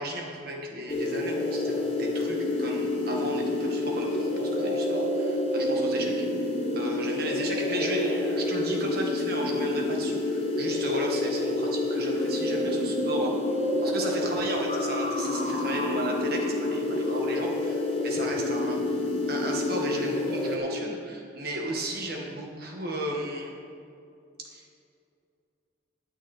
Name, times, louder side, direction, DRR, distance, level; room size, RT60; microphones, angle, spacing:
voice 1, 0.0-13.4 13.8-19.0 19.3-23.5 24.4-24.6, right 1 dB, 55° right, 0 dB, 1.8 m, -34 dB
sound 1, 0.9-20.6, left 2 dB, 30° left, 1.2 m, -28 dB
17.5 x 6.3 x 4.4 m, 2.5 s
head